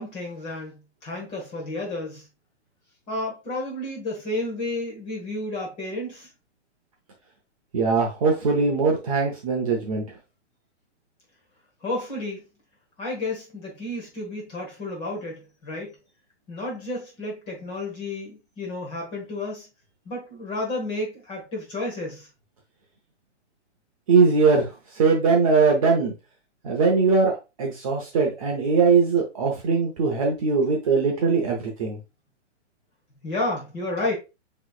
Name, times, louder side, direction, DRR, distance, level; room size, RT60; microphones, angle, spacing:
voice 1, 0.0-2.3 3.1-6.3 11.8-12.4 13.0-15.9 16.5-19.7 20.0-22.3 33.2-34.1, left 2 dB, 15° left, 1.2 m, -31 dB
voice 2, 7.7-10.0 24.1-24.7 25.0-26.1 26.6-27.3 27.6-32.0, right 4 dB, 30° right, 0.7 m, -21 dB
6.0 x 3.1 x 2.3 m
hypercardioid pair, 170°, 35 cm